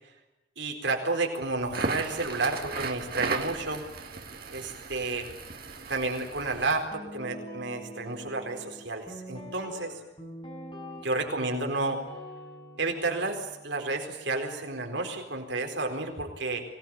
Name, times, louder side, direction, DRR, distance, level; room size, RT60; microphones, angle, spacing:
voice 1, 0.6-3.8 4.5-5.3 5.9-9.9 11.0-12.0 12.8-16.6, right 3 dB, 65° right, 3 dB, 4.3 m, -31 dB
Crackle, 1.6-6.9, right 3 dB, 50° right, 2.4 m, -36 dB
Guitar, 6.9-15.1, equal, 25° left, 6.4 m, -45 dB
24.5 x 18.5 x 8.9 m, 0.98 s
head